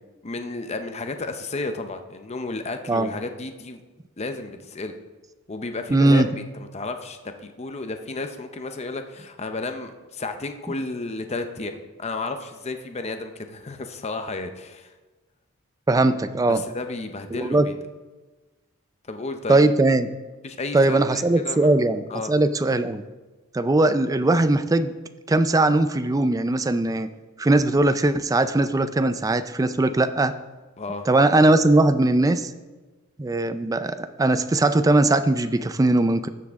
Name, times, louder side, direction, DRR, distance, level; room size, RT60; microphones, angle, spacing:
voice 1, 0.2-3.8 4.2-5.0 5.5-14.9 16.5-17.7 19.1-19.6 20.4-21.7 22.1-22.3 30.8-31.1, left 3 dB, 30° left, 7 dB, 0.6 m, -32 dB
voice 2, 5.9-6.3 15.9-16.6 17.3-17.7 19.5-20.1 20.7-22.0 22.3-23.0 23.5-24.9 25.3-27.1 27.4-30.3 31.1-32.5 33.2-36.3, right 2 dB, 15° right, 11 dB, 0.3 m, -20 dB
13.0 x 7.3 x 3.5 m, 1.2 s
head